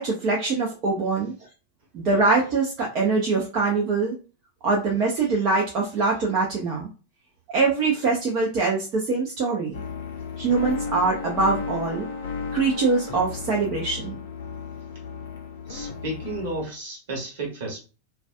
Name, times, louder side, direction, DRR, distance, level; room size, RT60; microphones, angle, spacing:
voice 1, 0.0-1.3 1.9-4.1 4.6-6.9 7.5-9.8 10.4-12.1 12.5-14.2, right 4 dB, 40° right, -2 dB, 0.6 m, -23 dB
sound 1, 9.7-16.7, left 5 dB, 60° left, 0.5 m, -34 dB
voice 2, 15.7-17.8, right 2 dB, 55° right, -1 dB, 1.2 m, -32 dB
2.4 x 2.3 x 2.4 m, 0.32 s
figure-of-eight pair, 90°, 0 cm